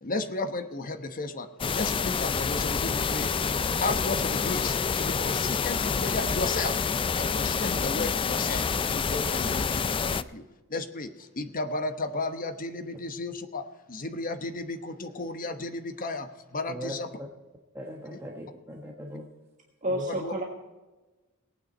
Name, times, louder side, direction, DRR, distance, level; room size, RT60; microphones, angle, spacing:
voice 1, 0.0-3.3 3.8-6.8 7.1-8.6 8.9-10.4 10.7-17.1 18.1-18.2 20.1-20.3, left 3 dB, 40° left, 7 dB, 1.1 m, -34 dB
sound 1, 1.6-10.2, left 5 dB, 25° left, 0.3 m, -27 dB
voice 2, 17.7-19.3 19.9-20.0, equal, 10° right, -1 dB, 1.2 m, -39 dB
voice 3, 19.8-20.4, right 1 dB, 35° right, -1 dB, 1.6 m, -29 dB
18.5 x 9.3 x 4.3 m, 1.2 s
head